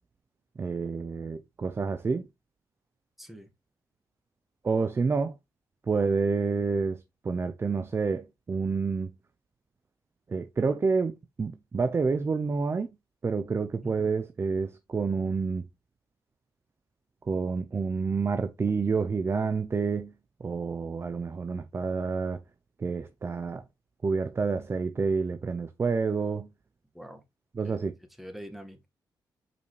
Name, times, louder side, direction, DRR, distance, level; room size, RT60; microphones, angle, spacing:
voice 1, 0.6-2.3 4.6-5.3 5.9-9.1 10.3-12.9 13.2-15.6 17.3-20.1 20.4-22.4 22.8-23.6 24.0-26.5 27.5-27.9, right 4 dB, 35° right, 0.7 m, -28 dB
voice 2, 3.2-3.5 13.8-14.1 26.9-27.2 27.6-27.8 28.2-28.9, equal, ahead, 1.8 m, -44 dB
6.9 x 5.3 x 3.3 m
cardioid pair, 95°, 8 cm